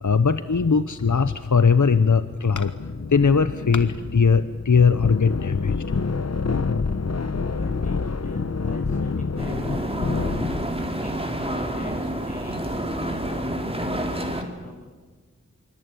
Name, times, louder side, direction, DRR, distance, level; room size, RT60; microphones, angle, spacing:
voice 1, 0.0-2.8 3.1-5.8, left 5 dB, 85° left, 12 dB, 0.9 m, -19 dB
sound 1, 2.5-10.9, left 4 dB, 60° left, 0.9 m, -28 dB
voice 2, 6.8-7.1 7.5-15.0, equal, 25° left, -1 dB, 7.1 m, -43 dB
Ocean-Designed-loop, 9.4-14.4, right 1 dB, 20° right, 3.7 m, -28 dB
25.5 x 24.0 x 9.1 m, 1.4 s
wide cardioid pair, 45°, 29 cm